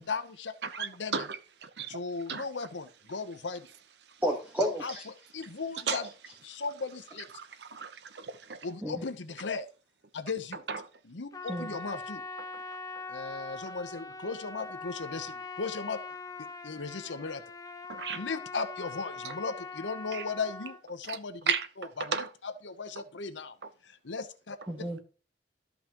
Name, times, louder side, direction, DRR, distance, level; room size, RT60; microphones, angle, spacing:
voice 1, 0.0-1.2 1.9-3.7 4.8-6.1 6.4-7.2 8.6-9.7 10.1-10.6 11.0-12.2 13.1-16.0 16.4-17.4 18.1-23.6 23.8-24.6, left 4 dB, 90° left, 0.9 m, -37 dB
voice 2, 0.6-1.9 2.3-2.4 5.9-6.0 7.3-8.6 10.7-10.8 17.9-18.2 19.2-19.3 20.1-20.2 21.1-21.2 21.5-21.7 22.1-22.3, right 6 dB, 65° right, 0.8 m, -34 dB
voice 3, 4.2-5.0 8.8-8.9 11.5-11.7 24.7-25.0, equal, 10° right, 1.4 m, -31 dB
Trumpet, 11.3-20.8, left 3 dB, 20° left, 0.6 m, -42 dB
13.0 x 5.5 x 3.0 m
head